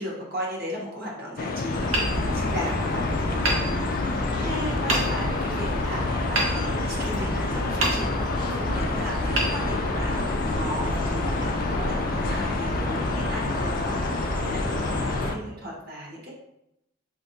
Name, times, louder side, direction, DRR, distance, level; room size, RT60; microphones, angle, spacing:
voice 1, 0.0-3.8 4.4-10.3 10.5-16.3, equal, 50° right, -3 dB, 1.0 m, -36 dB
sound 1, 1.4-15.4, left 4 dB, 45° left, 0.3 m, -30 dB
sound 2, 1.7-15.3, left 1 dB, 25° left, 0.7 m, -29 dB
Hammer, 1.9-2.9 3.4-4.3 4.9-5.5 6.3-7.3 7.8-8.5 9.3-10.3, right 2 dB, 90° right, 0.8 m, -29 dB
4.6 x 2.5 x 2.7 m, 0.83 s
head